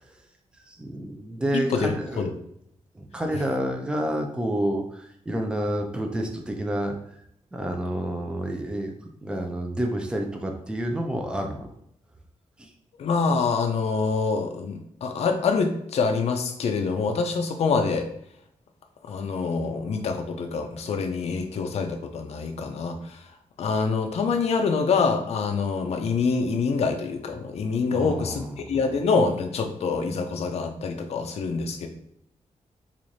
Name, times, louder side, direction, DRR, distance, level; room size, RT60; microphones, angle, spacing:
voice 1, 0.7-2.3 2.9-7.0 7.5-8.9 9.2-11.7 12.6-12.7 27.9-28.8, right 1 dB, 10° right, 3 dB, 0.5 m, -29 dB
voice 2, 1.5-2.3 13.0-18.1 19.1-23.2 23.6-31.9, left 4 dB, 60° left, 4 dB, 0.4 m, -26 dB
3.1 x 2.4 x 3.9 m, 0.72 s
wide cardioid pair, 125°, 12 cm